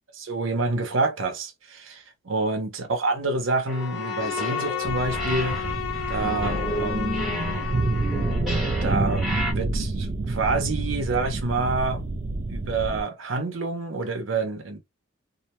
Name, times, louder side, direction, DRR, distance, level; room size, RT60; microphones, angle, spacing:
voice 1, 0.1-5.6 6.1-7.3 8.8-12.0 12.5-14.8, right 3 dB, 75° right, 0.7 m, -27 dB
Bowed string instrument, 3.7-8.5, left 8 dB, 80° left, 0.5 m, -32 dB
sound 1, 3.7-4.9 5.1-9.5, equal, ahead, 0.9 m, -32 dB
sound 2, 4.8-13.0, right 2 dB, 40° right, 0.4 m, -28 dB
2.5 x 2.1 x 2.8 m
head